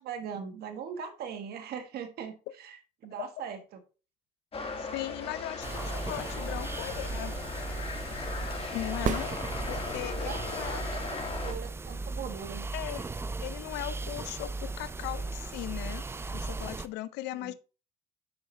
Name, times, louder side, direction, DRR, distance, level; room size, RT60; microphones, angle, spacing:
voice 1, 0.0-3.6 10.1-12.7 17.4-17.5, right 7 dB, 70° right, 1.4 m, -40 dB
sound 1, 4.5-11.5, left 4 dB, 35° left, 1.6 m, -38 dB
voice 2, 4.8-7.4 8.7-9.3 9.7-10.9 12.7-16.1 16.3-17.5, left 15 dB, 90° left, 0.5 m, -38 dB
sound 2, 5.6-16.9, right 3 dB, 15° right, 0.4 m, -37 dB
sound 3, 9.0-10.2 14.0-14.1, right 8 dB, 50° right, 0.7 m, -34 dB
7.6 x 5.7 x 3.2 m
cardioid pair, 110°, 17 cm